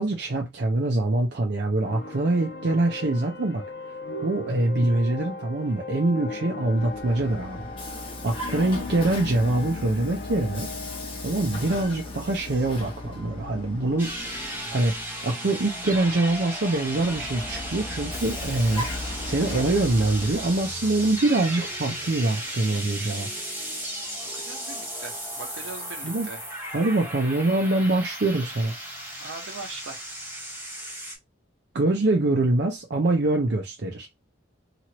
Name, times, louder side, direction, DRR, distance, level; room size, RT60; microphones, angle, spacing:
voice 1, 0.0-3.6 4.2-7.7 8.2-10.7 11.2-14.1 14.7-14.9 15.2-23.3 26.0-26.3 26.7-28.8 31.7-34.1, right 2 dB, 60° right, 0.6 m, -24 dB
sound 1, 1.8-13.1, left 3 dB, 55° left, 0.4 m, -38 dB
Vehicle, 6.6-15.1 16.8-20.7, left 2 dB, 25° left, 0.8 m, -37 dB
voice 2, 8.5-8.9 24.3-26.4 29.2-30.0, right 3 dB, 85° right, 1.1 m, -40 dB
sound 2, 14.0-31.2, equal, 10° right, 0.9 m, -35 dB
3.0 x 2.5 x 2.9 m
head